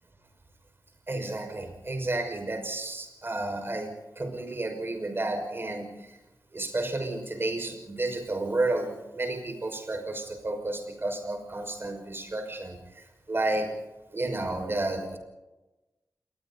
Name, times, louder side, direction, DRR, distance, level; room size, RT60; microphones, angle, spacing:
voice 1, 1.1-6.2 6.5-13.7 14.1-15.2, right 2 dB, 35° right, 4 dB, 5.8 m, -31 dB
29.5 x 21.5 x 4.2 m, 1.0 s
wide cardioid pair, 130°, 7 cm